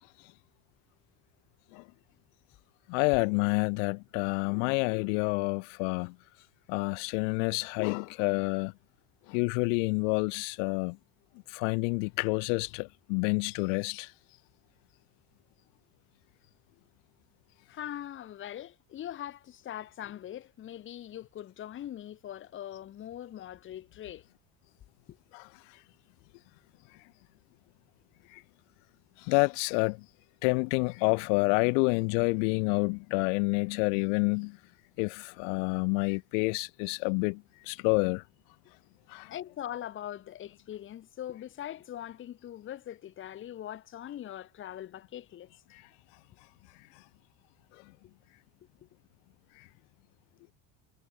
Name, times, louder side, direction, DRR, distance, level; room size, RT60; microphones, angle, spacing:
voice 1, 2.9-6.2 6.7-8.7 9.3-11.0 11.5-14.1 25.3-25.5 28.3-28.4 29.2-30.0 30.4-34.6 35.0-38.2 39.1-39.3 45.7-45.8, left 38 dB, 70° left, 3.0 m, -28 dB
voice 2, 17.7-24.2 25.1-25.2 39.3-45.5 48.0-48.1, left 11 dB, 30° left, 6.4 m, -41 dB
cardioid pair, 175°, 39 cm